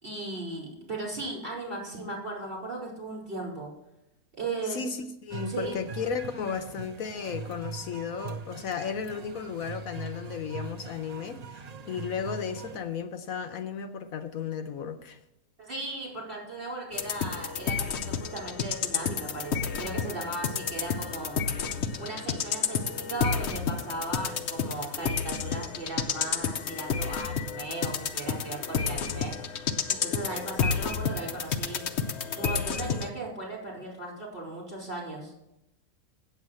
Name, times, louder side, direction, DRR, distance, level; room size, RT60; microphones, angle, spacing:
voice 1, 0.0-3.7 4.4-4.8 5.5-5.7 15.6-21.3 22.0-29.3 29.9-31.8 32.4-35.3, right 2 dB, 35° right, 5.0 m, -37 dB
voice 2, 4.6-15.2, left 6 dB, 75° left, 1.2 m, -34 dB
sound 1, 5.3-12.8, right 5 dB, 65° right, 0.4 m, -41 dB
sound 2, 16.9-33.1, left 6 dB, 55° left, 0.9 m, -31 dB
8.3 x 8.0 x 7.6 m
omnidirectional pair, 1.5 m